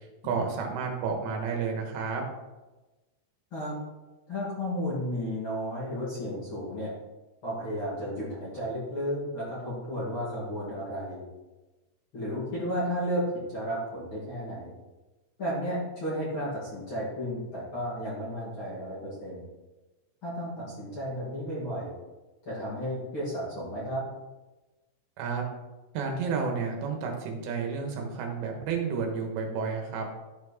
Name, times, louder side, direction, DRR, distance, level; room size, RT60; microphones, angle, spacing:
voice 1, 0.2-2.2 25.2-25.4 25.9-30.1, right 5 dB, 75° right, 2 dB, 3.3 m, -31 dB
voice 2, 4.3-6.9 7.4-11.2 12.1-14.7 15.4-19.5 20.2-21.9 22.4-24.0, equal, 40° left, -8 dB, 2.1 m, -33 dB
13.0 x 4.4 x 4.2 m, 1.1 s
omnidirectional pair, 5.6 m